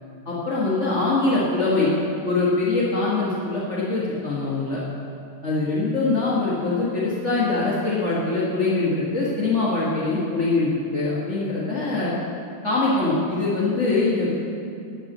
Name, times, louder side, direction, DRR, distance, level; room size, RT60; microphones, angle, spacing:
voice 1, 0.2-1.9 2.2-4.8 5.4-12.1 12.6-14.3, left 3 dB, 45° left, -7 dB, 0.9 m, -23 dB
12.0 x 5.9 x 7.8 m, 2.5 s
omnidirectional pair, 3.5 m